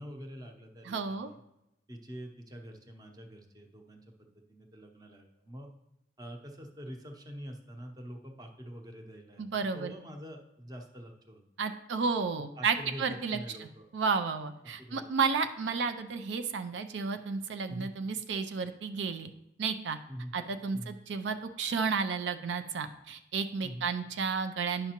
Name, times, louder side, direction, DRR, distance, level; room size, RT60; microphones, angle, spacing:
voice 1, 0.0-1.4 1.9-5.7 6.2-9.4 9.7-11.4 12.6-13.9 14.8-15.1 17.7-17.9 20.1-20.3 20.7-21.0 23.6-23.9, equal, 20° right, 3 dB, 0.7 m, -45 dB
voice 2, 0.8-1.3 9.4-9.9 11.6-13.4 13.9-19.3 19.6-20.0 20.3-24.9, right 5 dB, 90° right, 9 dB, 0.4 m, -32 dB
9.9 x 5.8 x 2.9 m, 0.87 s
head